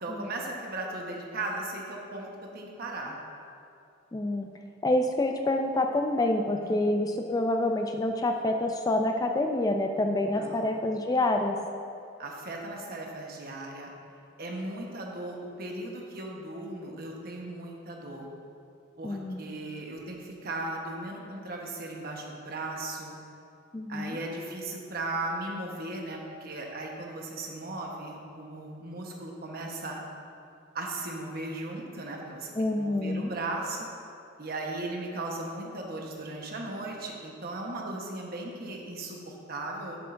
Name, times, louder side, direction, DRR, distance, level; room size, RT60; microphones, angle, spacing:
voice 1, 0.0-3.2 6.6-6.9 10.3-10.7 12.2-13.9 14.4-18.3 19.0-23.1 23.9-30.0 30.7-33.9 34.4-40.0, right 2 dB, 50° right, 0 dB, 1.1 m, -37 dB
voice 2, 4.1-4.5 4.8-11.6 19.0-19.6 23.7-24.2 32.6-33.3, left 1 dB, 20° left, 4 dB, 0.3 m, -27 dB
11.0 x 7.4 x 2.6 m, 2.6 s
head